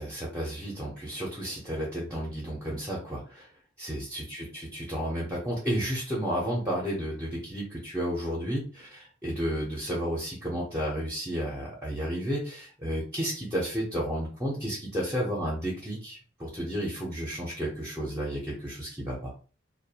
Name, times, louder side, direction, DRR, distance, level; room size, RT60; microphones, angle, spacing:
voice 1, 0.0-3.5 3.8-19.3, equal, 10° right, -4 dB, 0.6 m, -32 dB
2.5 x 2.2 x 2.8 m, 0.38 s
head